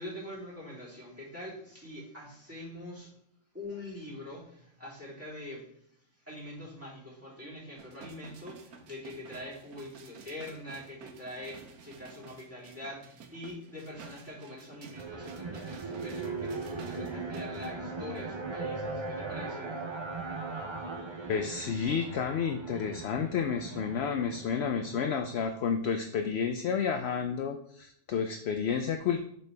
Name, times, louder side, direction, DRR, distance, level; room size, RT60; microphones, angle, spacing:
voice 1, 0.0-3.1 3.5-5.6 6.3-19.9 20.6-20.8, left 1 dB, 10° right, -8 dB, 3.0 m, -44 dB
sound 1, 7.8-17.7 18.2-18.3, right 5 dB, 85° right, 1.3 m, -52 dB
sound 2, 14.9-25.4, right 3 dB, 35° right, 0.4 m, -39 dB
voice 2, 21.3-29.2, left 6 dB, 65° left, 6 dB, 0.6 m, -31 dB
6.5 x 5.6 x 3.4 m, 0.71 s
omnidirectional pair, 1.5 m